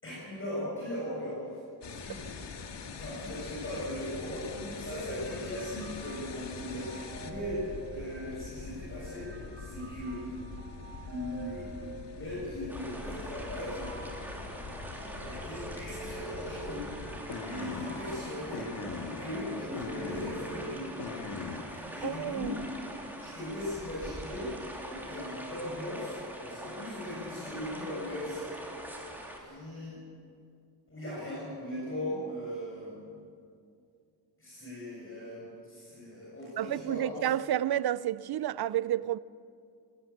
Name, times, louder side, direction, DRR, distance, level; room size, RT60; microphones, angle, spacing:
voice 1, 0.0-1.6 1.9-2.3 3.0-10.3 11.1-11.7 12.1-13.9 15.2-16.9 17.2-20.9 21.7-22.5 23.2-24.6 24.8-28.5 28.8-29.1 29.4-30.0 30.9-33.1 34.4-37.1, left 1 dB, 30° left, 7.4 m, -39 dB
sound 1, 1.8-21.6, left 5 dB, 85° left, 1.9 m, -43 dB
sound 2, 4.8-20.8, right 3 dB, 35° right, 2.4 m, -49 dB
sound 3, 12.7-29.4, right 1 dB, 5° right, 3.0 m, -43 dB
voice 2, 22.0-22.5 36.6-39.2, right 12 dB, 65° right, 0.5 m, -30 dB
18.5 x 18.5 x 8.7 m
wide cardioid pair, 165°, 42 cm